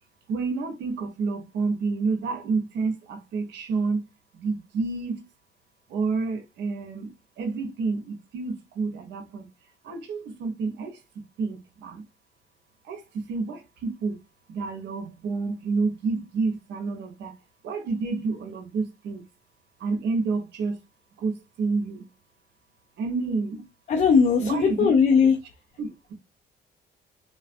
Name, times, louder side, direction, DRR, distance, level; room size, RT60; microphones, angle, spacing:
voice 1, 0.3-4.0 4.3-5.2 5.9-7.1 7.4-9.5 9.8-11.0 11.4-12.0 12.8-14.2 14.5-17.3 17.6-19.2 19.8-20.8 21.2-22.1 23.0-23.6 24.4-24.9 25.8-26.1, right 4 dB, 80° right, 0.9 m, -29 dB
voice 2, 23.9-25.3, left 6 dB, 45° left, 0.5 m, -19 dB
3.6 x 2.4 x 2.5 m
cardioid pair, 155°, 18 cm